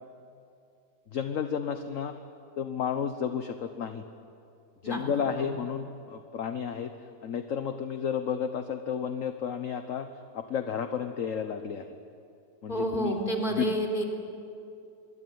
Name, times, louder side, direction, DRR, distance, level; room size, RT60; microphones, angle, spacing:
voice 1, 1.1-2.1 2.6-4.0 4.8-6.9 7.2-10.1 10.3-11.9 12.6-13.2 13.6-13.7, left 7 dB, 50° left, 8 dB, 1.3 m, -32 dB
voice 2, 4.8-5.5 12.7-14.0, right 1 dB, 25° left, 3 dB, 3.8 m, -30 dB
26.0 x 22.5 x 9.4 m, 2.6 s
omnidirectional pair, 1.9 m